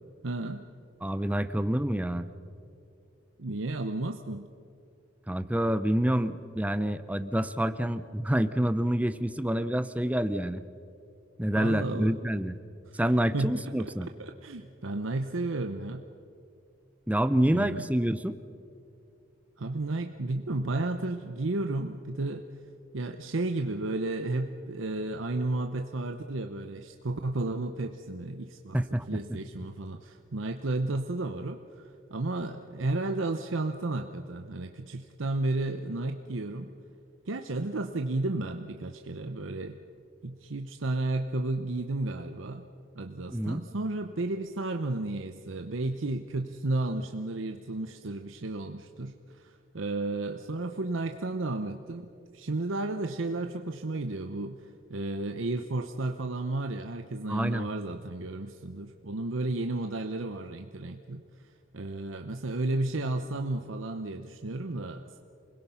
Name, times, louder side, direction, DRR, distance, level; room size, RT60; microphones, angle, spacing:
voice 1, 0.2-0.7 3.4-4.5 11.5-12.2 12.9-13.0 13.3-16.0 17.5-17.9 19.6-22.4 22.9-36.7 37.3-39.8 40.2-42.6 42.9-61.2 61.7-65.2, right 2 dB, 80° right, 6 dB, 0.8 m, -33 dB
voice 2, 1.0-2.3 5.3-10.6 11.4-12.6 13.0-14.1 17.1-18.4 28.7-29.4 43.3-43.6 57.3-57.7, right 1 dB, 5° right, 12 dB, 0.6 m, -27 dB
28.0 x 21.0 x 5.7 m, 2.5 s
head